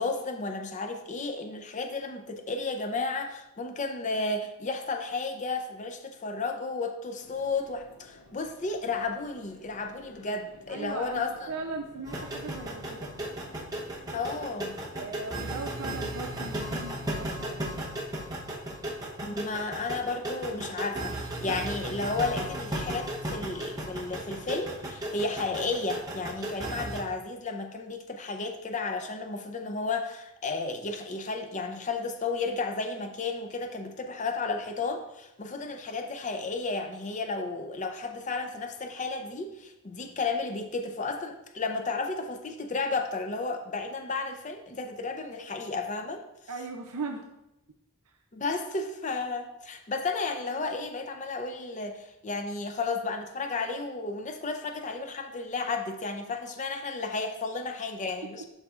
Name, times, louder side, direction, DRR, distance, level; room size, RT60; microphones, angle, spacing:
voice 1, 0.0-11.5 14.1-14.7 19.2-46.2 48.3-58.4, left 3 dB, 35° left, 5 dB, 0.5 m, -33 dB
sound 1, 7.2-17.5, equal, 80° left, 1.8 m, -54 dB
voice 2, 10.7-13.1 14.9-18.0 46.5-47.3 48.1-48.2, right 3 dB, 80° right, 2 dB, 0.6 m, -38 dB
sound 2, 12.1-27.0, right 1 dB, 15° right, 0.9 m, -35 dB
11.5 x 4.0 x 2.4 m, 0.88 s
head